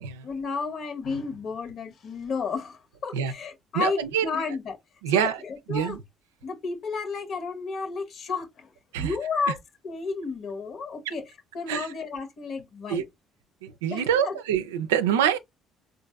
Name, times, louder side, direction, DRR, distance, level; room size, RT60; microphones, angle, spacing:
voice 1, 0.2-4.8 5.1-6.0 6.4-8.7 9.0-9.6 9.8-13.0 13.9-14.4, left 4 dB, 55° left, 1.2 m, -32 dB
voice 2, 3.7-4.3 5.0-5.4 5.7-6.0 8.9-9.1 9.5-9.6 11.7-11.9 12.9-13.0 13.6-15.4, right 9 dB, 90° right, 0.4 m, -25 dB
4.0 x 2.6 x 2.2 m
hypercardioid pair, 60°, 0 cm